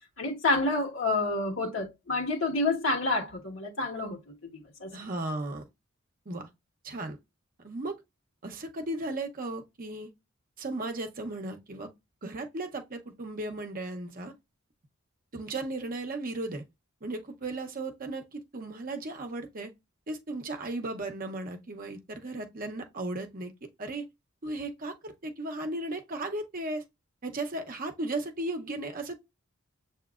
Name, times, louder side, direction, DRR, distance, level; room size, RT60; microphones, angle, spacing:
voice 1, 0.2-4.2 4.5-4.9, left 2 dB, 65° left, 1.4 m, -28 dB
voice 2, 4.9-5.6 6.3-6.5 6.8-7.2 7.6-7.9 8.4-10.1 10.6-11.9 12.2-14.3 15.3-16.6 17.0-19.7 20.1-23.5 23.8-24.1 24.4-26.8 27.2-29.2, right 2 dB, 45° right, 0.8 m, -35 dB
7.0 x 2.8 x 2.4 m
head